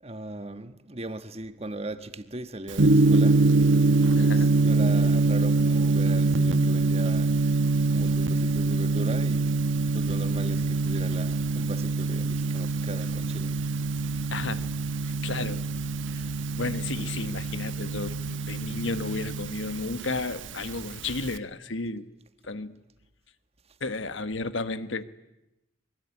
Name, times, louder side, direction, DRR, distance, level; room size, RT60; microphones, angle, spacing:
voice 1, 0.0-3.8 4.1-7.4 7.9-9.7 9.9-13.6 24.1-24.2, right 2 dB, 30° right, 1.4 m, -38 dB
Gong, 2.7-21.4, right 3 dB, 75° right, 1.1 m, -24 dB
voice 2, 4.1-4.5 14.3-14.7 15.2-15.6 16.1-16.2 16.6-22.1 22.5-22.8 23.8-25.0, left 3 dB, 75° left, 1.3 m, -33 dB
25.0 x 22.5 x 9.8 m
head